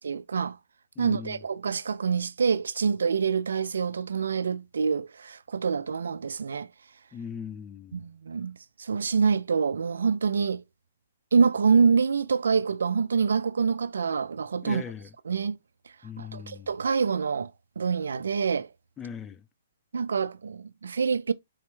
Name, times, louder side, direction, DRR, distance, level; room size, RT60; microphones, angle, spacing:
voice 1, 0.0-0.6 1.0-6.7 7.9-10.6 11.3-14.8 15.3-15.6 16.2-17.5 17.8-18.7 19.9-21.3, right 5 dB, 85° right, 0.3 m, -26 dB
voice 2, 1.0-1.4 7.1-8.0 14.6-15.1 16.0-16.7 19.0-19.4, left 7 dB, 15° left, 0.3 m, -39 dB
4.0 x 2.2 x 3.0 m
hypercardioid pair, 150°, 0 cm